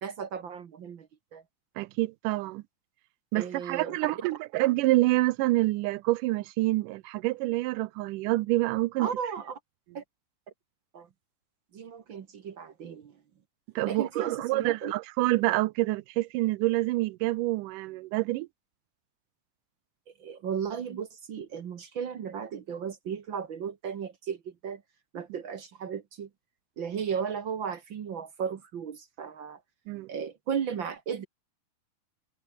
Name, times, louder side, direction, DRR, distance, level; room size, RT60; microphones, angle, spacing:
voice 1, 0.0-1.4 3.4-4.3 9.0-9.6 9.9-10.0 10.9-11.1 11.7-13.2 13.8-14.9 20.2-24.8 25.1-26.3 26.8-29.6 30.1-31.3, right 7 dB, 55° right, 1.5 m, -35 dB
voice 2, 1.8-2.6 3.3-9.1 13.8-18.5 29.9-30.1, right 19 dB, 85° right, 2.2 m, -27 dB
omnidirectional pair, 3.7 m